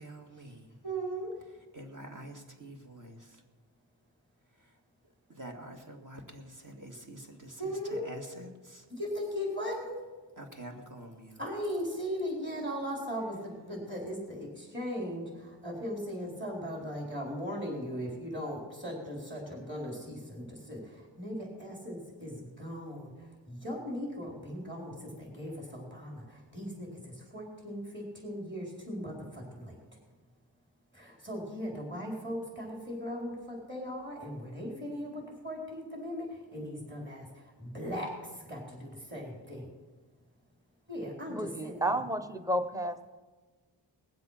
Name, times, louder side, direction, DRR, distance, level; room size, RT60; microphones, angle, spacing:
voice 1, 0.0-0.7 1.7-3.4 4.6-4.7 5.3-8.8 10.4-11.4, right 1 dB, 45° right, 2 dB, 2.2 m, -47 dB
voice 2, 0.8-1.3 7.6-8.1 8.9-10.0 11.4-29.8 30.9-39.7 40.9-41.9, equal, 25° right, -2 dB, 4.3 m, -38 dB
voice 3, 41.3-43.1, right 1 dB, 10° right, 8 dB, 0.9 m, -32 dB
20.0 x 7.7 x 5.8 m, 1.3 s
cardioid pair, 55°, 44 cm